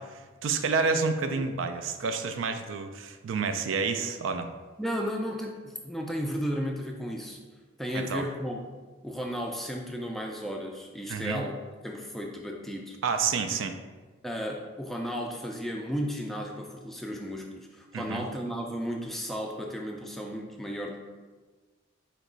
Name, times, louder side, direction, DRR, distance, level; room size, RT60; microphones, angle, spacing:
voice 1, 0.0-4.5 7.9-8.2 11.1-11.4 13.0-13.8 17.9-18.3, right 5 dB, 75° right, 8 dB, 0.4 m, -29 dB
voice 2, 4.8-7.4 7.8-8.6 9.0-11.5 11.8-13.0 14.2-21.0, equal, ahead, 0 dB, 0.3 m, -34 dB
4.5 x 3.0 x 3.8 m, 1.3 s
head